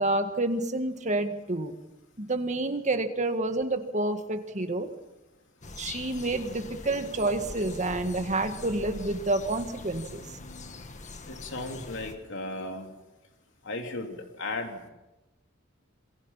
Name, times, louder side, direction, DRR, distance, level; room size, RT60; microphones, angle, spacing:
voice 1, 0.0-1.7 2.2-4.9 5.8-10.3, right 2 dB, 35° right, 7 dB, 1.8 m, -29 dB
sound 1, 5.6-12.1, left 2 dB, 35° left, 1.7 m, -43 dB
voice 2, 11.3-12.9 13.6-14.9, left 2 dB, 65° left, 3 dB, 3.1 m, -36 dB
27.5 x 22.0 x 5.7 m, 1.0 s
head